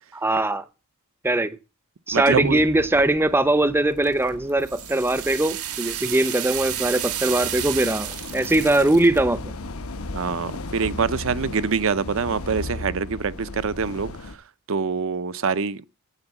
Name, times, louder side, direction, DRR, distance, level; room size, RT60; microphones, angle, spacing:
voice 1, 0.1-0.6 1.2-1.6 2.1-9.4, right 1 dB, 10° right, 0.6 m, -21 dB
sound 1, 2.1-14.4, left 2 dB, 70° left, 0.9 m, -37 dB
voice 2, 2.1-2.6 10.1-14.4 14.7-15.8, right 5 dB, 60° right, 0.6 m, -25 dB
sound 2, 4.0-9.2, right 12 dB, 85° right, 1.6 m, -31 dB
9.7 x 8.0 x 8.1 m
head